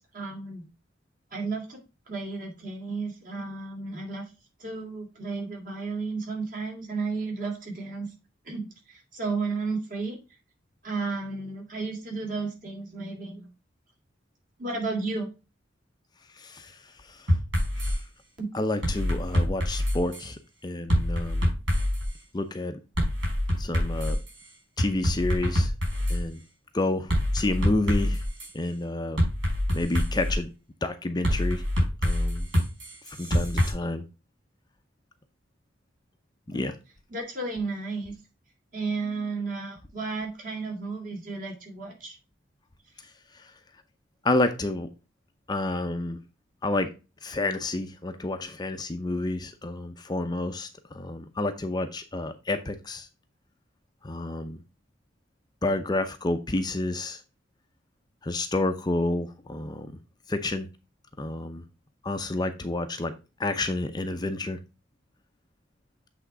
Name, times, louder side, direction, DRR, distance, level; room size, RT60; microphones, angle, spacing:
voice 1, 0.1-0.6 1.3-1.8 2.1-4.2 4.6-8.1 8.5-10.2 10.8-13.5 14.6-15.3 18.4-18.5 36.5-36.6 37.1-38.1 38.7-42.2, right 3 dB, 45° right, 1 dB, 2.8 m, -33 dB
voice 2, 16.4-16.7 17.1-17.2 17.8-18.0 18.5-21.5 22.3-22.8 23.6-24.2 24.8-25.7 26.1-26.4 26.7-28.2 28.5-29.2 29.7-30.5 30.8-31.6 32.0-32.5 33.1-34.0 36.5-36.7 44.2-44.9 45.5-46.2 46.6-46.9 47.2-53.1 54.0-54.6 55.6-57.2 58.2-59.9 60.3-60.7 61.2-61.6 62.0-63.1 63.4-64.6, left 2 dB, 20° left, 8 dB, 0.6 m, -29 dB
sound 1, 17.3-17.9 18.8-20.3 20.9-22.1 23.0-24.3 24.8-26.2 27.1-28.5 29.2-30.3 31.2-33.7, equal, 70° right, 4.7 m, -25 dB
8.1 x 3.7 x 4.8 m, 0.29 s
head